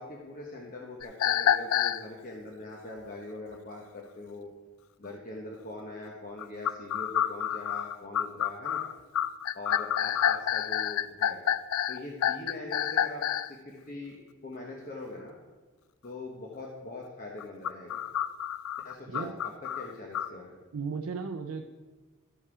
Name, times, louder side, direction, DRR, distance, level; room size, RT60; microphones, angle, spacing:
voice 1, 0.0-4.5 5.0-8.8 9.5-11.4 11.9-15.3 16.0-18.0 18.8-20.6, left 2 dB, 40° left, -1 dB, 0.9 m, -42 dB
sound 1, 1.0-2.0 6.4-13.5 17.4-20.3, left 10 dB, 70° left, 0.3 m, -28 dB
voice 2, 19.1-19.4 20.7-21.7, right 5 dB, 75° right, 4 dB, 0.5 m, -35 dB
12.5 x 5.5 x 4.8 m, 1.3 s
head